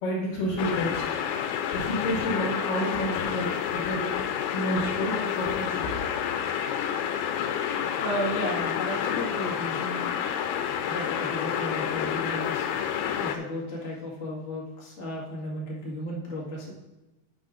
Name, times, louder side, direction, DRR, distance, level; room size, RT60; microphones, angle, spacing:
voice 1, 0.0-1.1 1.7-4.1 4.5-5.9, equal, 65° left, -3 dB, 2.9 m, -29 dB
sound 1, 0.6-13.4, left 8 dB, 90° left, 2.5 m, -29 dB
voice 2, 7.9-10.1 10.9-12.7 13.2-16.7, equal, 35° left, -5 dB, 1.1 m, -34 dB
11.0 x 8.6 x 2.6 m, 1.1 s
omnidirectional pair, 4.4 m